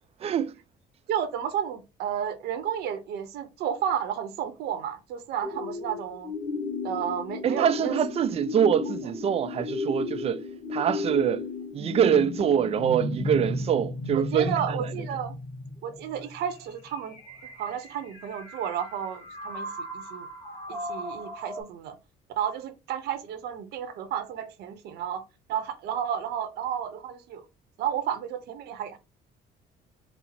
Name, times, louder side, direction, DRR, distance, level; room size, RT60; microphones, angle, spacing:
voice 1, 0.2-0.5 7.4-10.4 10.7-11.4 11.7-14.7, right 8 dB, 35° right, 0.4 m, -24 dB
voice 2, 1.1-6.3 6.8-8.0 9.0-9.1 14.1-15.3 15.8-17.2 17.6-19.7 19.9-20.3 20.7-21.9 22.4-25.2 25.5-27.4 27.8-29.0, right 9 dB, 80° right, 0.9 m, -32 dB
sound 1, 5.4-21.6, left 2 dB, 30° left, 1.6 m, -35 dB
4.3 x 2.1 x 4.1 m
cardioid pair, 110°, 17 cm